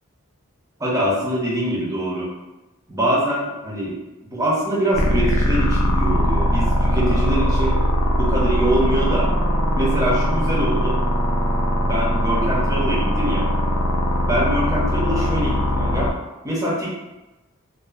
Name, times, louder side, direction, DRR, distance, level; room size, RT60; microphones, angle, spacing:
voice 1, 0.8-2.3 2.9-4.0 4.3-7.8 8.2-9.3 9.8-11.0 11.8-13.5 14.2-16.1 16.4-17.0, right 1 dB, 15° right, -6 dB, 0.6 m, -23 dB
sound 1, 4.9-16.1, equal, 80° left, 0.4 m, -20 dB
2.5 x 2.3 x 2.3 m, 1.0 s
head